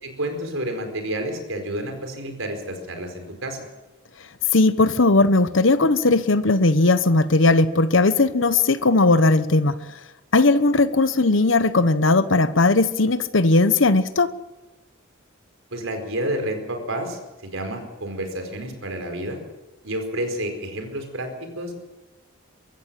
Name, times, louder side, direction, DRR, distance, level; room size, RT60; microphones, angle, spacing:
voice 1, 0.0-3.6 15.7-19.4 19.8-21.7, right 1 dB, 90° right, 5 dB, 4.8 m, -30 dB
voice 2, 4.5-9.8 10.3-14.3, left 2 dB, 75° left, 13 dB, 1.0 m, -18 dB
23.0 x 15.0 x 7.6 m, 1.1 s
head